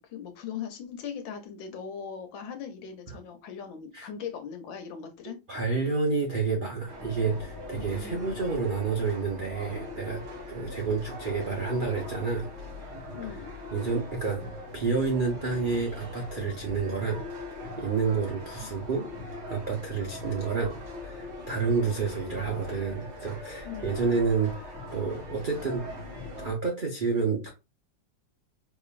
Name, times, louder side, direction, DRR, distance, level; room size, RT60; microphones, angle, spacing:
voice 1, 0.0-5.4 7.8-8.4 13.1-13.5 23.6-24.0, left 7 dB, 85° left, 1.6 m, -39 dB
voice 2, 5.5-10.2 10.5-12.5 13.3-13.4 13.7-14.4 14.7-17.2 17.8-19.1 19.5-25.9 26.4-27.5, right 4 dB, 85° right, 0.4 m, -29 dB
sound 1, 6.9-26.5, left 2 dB, 55° right, 2.2 m, -41 dB
4.5 x 3.0 x 2.4 m
omnidirectional pair, 2.1 m